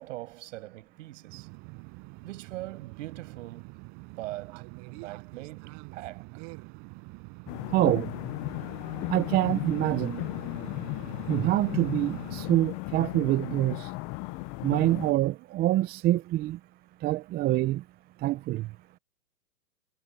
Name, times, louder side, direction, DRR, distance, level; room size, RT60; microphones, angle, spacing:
voice 1, 0.0-1.5 2.2-3.7 4.2-6.3, right 17 dB, 55° right, 6.6 m, -41 dB
sound 1, 1.3-12.5, right 33 dB, 40° right, 5.6 m, -45 dB
sound 2, 7.5-15.1, left 26 dB, 30° left, 0.7 m, -35 dB
voice 2, 7.7-8.1 9.1-10.2 11.3-13.9 14.6-16.6 17.0-17.8 18.2-18.7, right 15 dB, 20° right, 0.7 m, -26 dB
hypercardioid pair, 125°, 44 cm